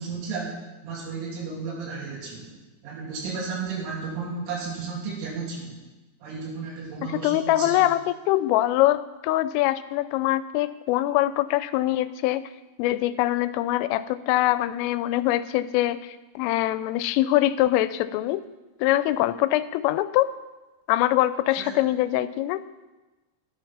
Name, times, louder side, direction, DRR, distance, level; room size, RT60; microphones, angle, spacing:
voice 1, 0.0-2.5 2.8-5.8 6.2-7.9 21.6-21.7, right 4 dB, 75° right, -5 dB, 5.3 m, -33 dB
voice 2, 7.0-12.4 12.8-18.4 18.8-20.3 20.9-22.6, left 15 dB, 90° left, 14 dB, 3.2 m, -23 dB
11.5 x 9.5 x 5.9 m, 1.1 s
omnidirectional pair, 5.7 m